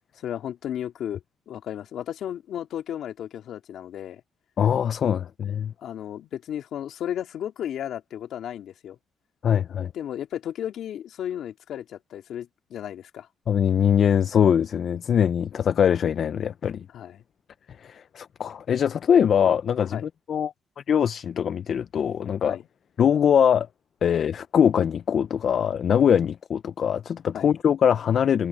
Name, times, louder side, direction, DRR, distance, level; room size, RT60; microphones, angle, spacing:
voice 1, 0.2-1.2 1.5-4.2 5.8-9.0 9.9-13.3 16.9-17.2 19.9-20.1 22.5-22.6 27.3-27.5, left 10 dB, 75° left, 2.8 m, -34 dB
voice 2, 4.6-5.7 9.4-9.9 13.5-16.9 17.8-20.5 20.9-22.6 23.0-23.7 24.0-28.5, left 8 dB, 60° left, 0.6 m, -22 dB
cardioid pair, 90°, 0 cm